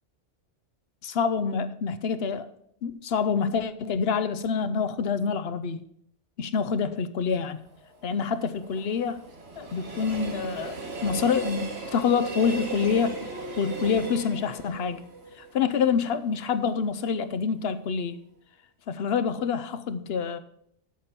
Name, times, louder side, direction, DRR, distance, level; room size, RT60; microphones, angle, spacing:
voice 1, 1.0-2.5 2.8-5.8 6.4-7.6 8.0-9.2 9.6-13.2 13.6-15.0 15.4-18.2 18.9-20.4, left 6 dB, 60° left, 0.9 m, -27 dB
Train, 7.5-16.6 17.0-17.1, right 4 dB, 60° right, 1.8 m, -38 dB
8.7 x 6.8 x 5.7 m
omnidirectional pair, 1.2 m